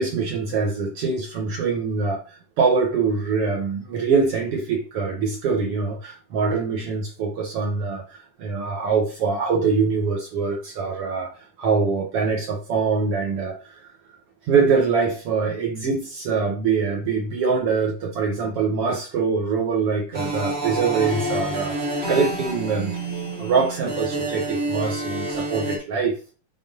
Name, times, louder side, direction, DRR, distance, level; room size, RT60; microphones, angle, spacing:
voice 1, 0.0-11.3 11.6-13.9 14.5-22.9 23.4-26.2, right 5 dB, 60° right, 1.7 m, -24 dB
sound 1, 20.1-25.8, right 1 dB, 25° right, 1.5 m, -28 dB
8.9 x 4.1 x 2.8 m
omnidirectional pair, 3.6 m